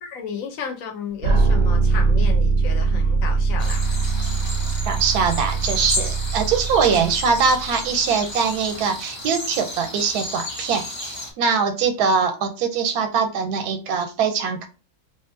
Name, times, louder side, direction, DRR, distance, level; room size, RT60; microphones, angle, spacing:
voice 1, 0.0-3.8 6.8-7.0, left 6 dB, 70° left, 1.0 m, -33 dB
sound 1, 1.2-8.1, right 4 dB, 65° right, 0.7 m, -22 dB
sound 2, 3.6-11.3, left 1 dB, 40° left, 0.4 m, -32 dB
voice 2, 4.9-14.7, right 5 dB, 90° right, 1.1 m, -22 dB
2.8 x 2.4 x 2.5 m
omnidirectional pair, 1.6 m